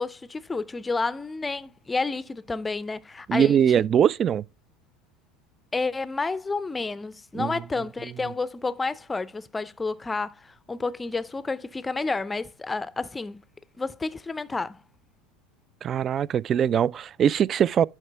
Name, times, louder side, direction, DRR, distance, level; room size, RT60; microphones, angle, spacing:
voice 1, 0.0-3.6 5.7-13.4 13.8-14.8, left 3 dB, 15° left, 0.5 m, -30 dB
voice 2, 3.3-4.4 7.3-7.5 15.8-17.8, right 8 dB, 40° right, 0.3 m, -22 dB
11.0 x 4.7 x 3.4 m
hypercardioid pair, 90°, 0 cm